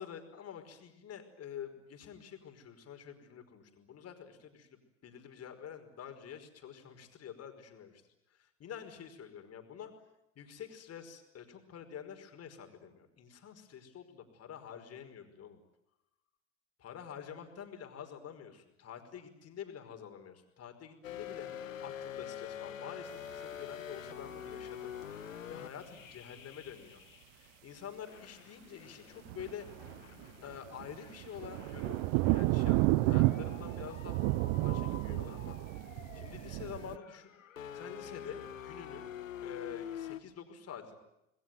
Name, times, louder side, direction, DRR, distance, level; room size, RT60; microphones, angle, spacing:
voice 1, 0.0-4.7 5.0-8.0 8.3-9.9 10.4-15.6 16.8-24.9 25.5-27.0 27.3-29.7 30.4-34.3 34.6-35.6 35.9-37.3 37.7-39.1 39.4-40.9, left 8 dB, 40° left, 6 dB, 5.3 m, -48 dB
sound 1, 21.0-27.6 28.1-40.2, left 9 dB, 85° left, 1.7 m, -47 dB
sound 2, 29.3-37.0, right 20 dB, 55° right, 1.0 m, -31 dB
28.0 x 21.0 x 9.3 m, 0.88 s
hypercardioid pair, 80°, 38 cm